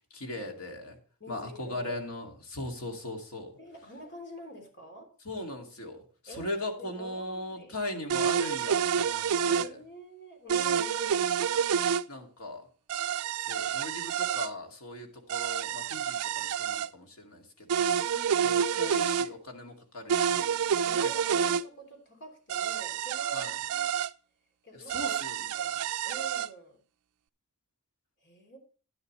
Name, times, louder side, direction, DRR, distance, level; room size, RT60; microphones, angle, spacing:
voice 1, 0.1-1.0 1.3-3.5 5.2-9.8 12.1-12.7 13.3-18.0 18.4-20.7 21.0-21.6 23.3-23.6 24.7-25.7, left 1 dB, 70° left, 2 dB, 2.4 m, -39 dB
voice 2, 1.2-2.0 3.6-5.1 6.3-7.7 9.6-11.3 18.1-18.8 20.8-23.9 24.6-25.2 25.5-26.8 28.2-28.6, right 1 dB, 55° left, 3 dB, 3.2 m, -47 dB
sound 1, 8.1-9.7 10.5-12.0 12.9-14.5 15.3-16.9 17.7-19.3 20.1-21.6 22.5-24.1 24.9-26.5, right 8 dB, 75° right, 0.4 m, -28 dB
11.0 x 11.0 x 3.2 m, 0.38 s
head